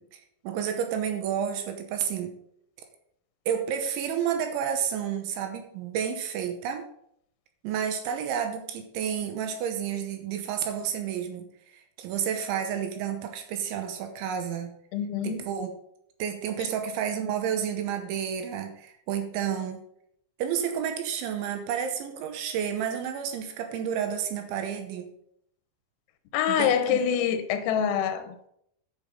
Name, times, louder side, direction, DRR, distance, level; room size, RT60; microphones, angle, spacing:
voice 1, 0.0-2.3 3.5-6.9 7.6-11.5 11.7-14.7 15.2-15.7 16.2-19.8 20.4-25.1 26.5-27.0, right 8 dB, 75° right, 6 dB, 3.0 m, -30 dB
voice 2, 14.9-15.4 16.6-16.8 26.3-28.5, left 8 dB, 90° left, 9 dB, 3.6 m, -26 dB
11.0 x 5.8 x 5.3 m, 0.71 s
omnidirectional pair, 5.9 m